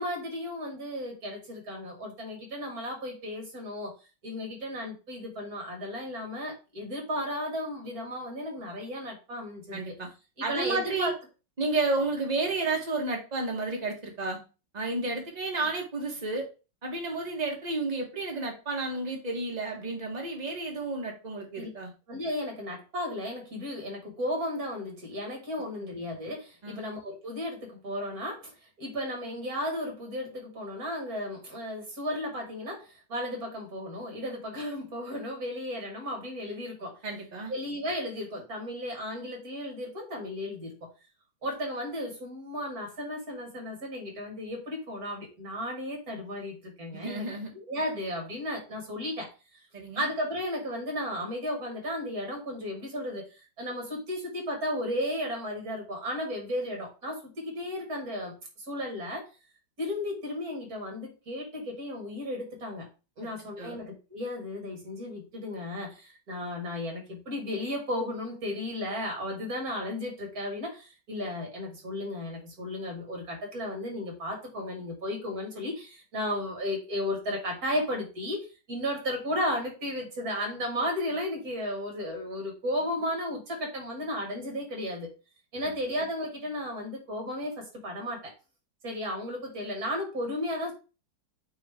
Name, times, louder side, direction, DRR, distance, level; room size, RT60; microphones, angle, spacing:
voice 1, 0.0-3.9 4.2-9.8 10.4-11.1 21.6-21.7 22.1-37.0 37.5-40.9 41.4-47.2 47.5-49.3 49.9-58.4 58.7-59.3 59.8-62.9 63.2-85.1 85.5-88.3 88.8-90.7, left 1 dB, 50° right, 1 dB, 2.6 m, -34 dB
voice 2, 9.7-10.1 10.4-11.1 11.6-14.4 14.7-16.5 16.8-21.9 26.6-26.8 37.0-37.5 46.9-47.5 49.7-50.1 63.6-63.8, right 3 dB, 25° right, 0 dB, 1.3 m, -31 dB
8.4 x 3.1 x 3.5 m, 0.32 s
omnidirectional pair, 2.0 m